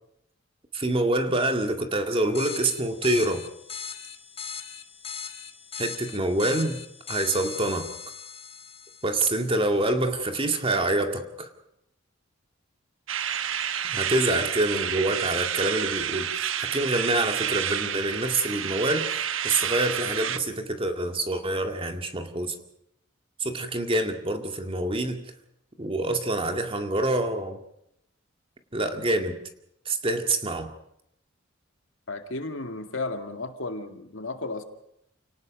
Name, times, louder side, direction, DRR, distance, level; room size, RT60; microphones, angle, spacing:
voice 1, 0.7-3.4 5.8-6.8 7.1-7.9 9.0-11.5 13.9-22.5 23.4-25.2 25.8-27.6 28.7-29.4 29.9-30.7, right 2 dB, 30° right, 6 dB, 2.1 m, -26 dB
sound 1, 2.3-9.5, left 7 dB, 30° left, 2.0 m, -39 dB
sound 2, 13.1-20.4, right 9 dB, 80° right, 1.2 m, -29 dB
voice 2, 32.1-34.6, left 2 dB, 75° left, 6 dB, 2.2 m, -33 dB
29.0 x 18.5 x 5.3 m, 0.77 s
head